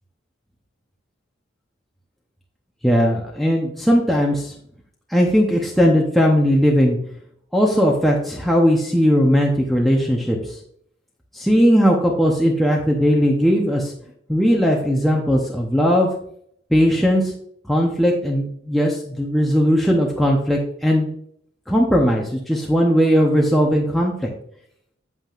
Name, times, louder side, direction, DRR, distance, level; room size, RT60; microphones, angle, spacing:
voice 1, 2.8-4.5 5.1-7.0 7.5-10.6 11.3-13.9 14.3-16.1 16.7-17.3 17.7-21.1 21.7-24.3, equal, ahead, -2 dB, 0.8 m, -18 dB
8.6 x 7.4 x 2.5 m, 0.66 s
head